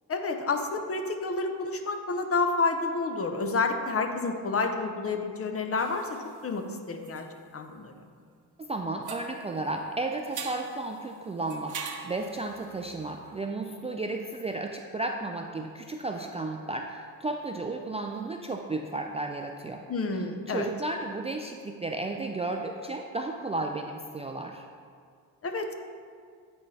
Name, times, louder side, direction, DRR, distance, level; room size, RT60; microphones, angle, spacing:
voice 1, 0.1-6.2 6.4-7.2 7.5-7.9 19.9-20.7 25.4-25.7, left 3 dB, 35° left, 6 dB, 0.7 m, -29 dB
sound 1, 5.8-8.7 9.0-13.4, right 6 dB, 50° right, 0.8 m, -43 dB
voice 2, 8.7-11.8 12.0-19.8 20.5-24.7, right 2 dB, 15° right, 2 dB, 0.3 m, -33 dB
8.9 x 4.1 x 3.2 m, 2.1 s
cardioid pair, 75°, 39 cm